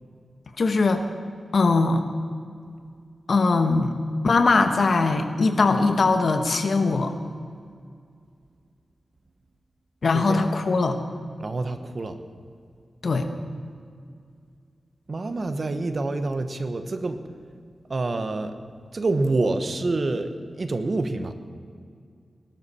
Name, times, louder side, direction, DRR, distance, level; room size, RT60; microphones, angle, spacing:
voice 1, 0.6-1.0 1.5-2.0 3.3-3.9 4.2-7.1 10.0-11.0 13.0-13.3, left 3 dB, 60° left, 7 dB, 1.1 m, -21 dB
voice 2, 10.1-10.4 11.4-12.2 15.1-17.2 17.9-18.6 18.9-21.3, right 2 dB, 45° right, 8 dB, 1.0 m, -27 dB
19.0 x 12.0 x 4.3 m, 2.2 s
wide cardioid pair, 110°, 0 cm